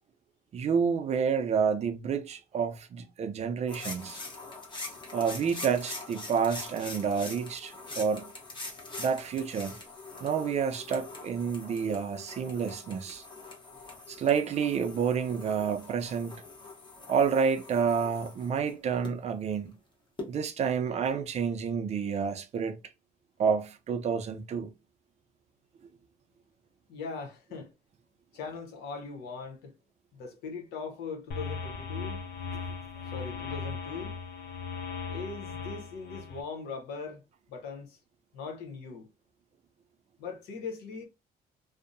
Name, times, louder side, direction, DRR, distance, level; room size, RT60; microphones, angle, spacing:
voice 1, 0.5-4.2 5.1-8.2 9.0-9.8 10.2-13.2 14.1-16.4 17.1-19.7 20.3-22.8 23.4-24.7, right 6 dB, 40° right, 0.4 m, -29 dB
sound 1, 3.7-19.1 20.2-20.3, left 3 dB, 30° left, 0.9 m, -44 dB
voice 2, 26.9-27.7 28.3-29.7 30.1-32.2 33.1-34.2 35.1-37.2 37.5-38.0 38.3-39.1 40.2-41.0, left 4 dB, 85° left, 0.9 m, -40 dB
sound 2, 31.3-36.4, left 5 dB, 65° left, 0.6 m, -38 dB
2.6 x 2.1 x 2.5 m
cardioid pair, 110°, 17 cm